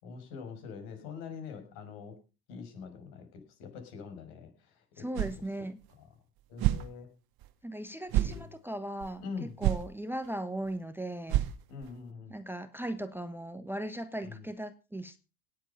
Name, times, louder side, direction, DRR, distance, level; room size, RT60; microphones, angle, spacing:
voice 1, 0.0-2.2 2.5-5.1 6.5-7.1 8.2-8.5 9.2-9.6 11.7-12.4 14.3-14.5, left 5 dB, 65° left, 6 dB, 5.8 m, -44 dB
voice 2, 5.0-5.8 7.6-11.4 12.3-15.2, right 1 dB, 5° right, 11 dB, 1.2 m, -38 dB
sound 1, 5.1-5.4 5.8-5.9 6.6-6.9 7.4-7.5 8.1-8.4 9.0-9.1 9.6-9.9 10.2-10.3 10.7-10.8 11.3-11.9, right 14 dB, 45° right, 1.6 m, -28 dB
18.0 x 7.9 x 5.6 m, 0.33 s
hypercardioid pair, 80°, 50 cm